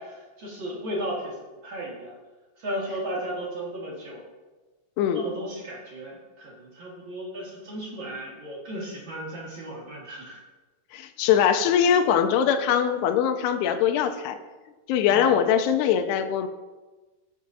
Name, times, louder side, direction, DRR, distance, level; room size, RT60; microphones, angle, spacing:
voice 1, 0.0-1.3 1.6-2.1 2.6-4.2 5.1-10.4 15.1-15.4, right 1 dB, 55° right, -5 dB, 1.3 m, -35 dB
voice 2, 10.9-14.4 14.9-16.5, left 8 dB, 80° left, 7 dB, 2.5 m, -22 dB
17.0 x 6.4 x 2.7 m, 1.2 s
omnidirectional pair, 5.1 m